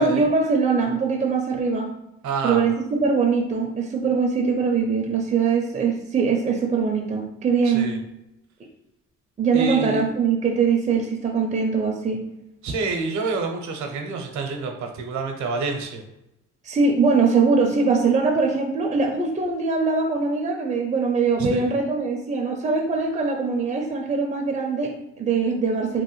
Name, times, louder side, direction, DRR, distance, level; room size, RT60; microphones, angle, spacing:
voice 1, 0.0-1.9 2.4-7.9 9.4-12.2 16.6-26.0, right 4 dB, 25° right, 1 dB, 0.4 m, -22 dB
voice 2, 2.2-2.6 7.6-8.0 9.5-10.0 12.6-16.0 21.4-21.7, right 4 dB, 70° right, 3 dB, 0.7 m, -28 dB
3.1 x 2.1 x 3.0 m, 0.89 s
cardioid pair, 90°, 30 cm